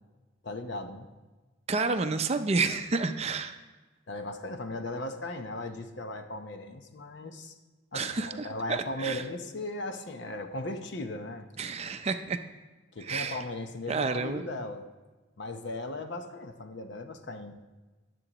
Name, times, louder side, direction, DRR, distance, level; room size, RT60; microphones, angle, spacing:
voice 1, 0.4-1.1 4.1-7.5 7.9-11.5 12.9-14.8 15.4-17.6, left 2 dB, 60° left, 7 dB, 0.8 m, -37 dB
voice 2, 1.7-3.6 7.9-9.2 11.6-12.4 13.0-13.4 13.9-14.4, right 4 dB, 30° right, 8 dB, 0.5 m, -30 dB
21.0 x 7.7 x 3.0 m, 1.2 s
head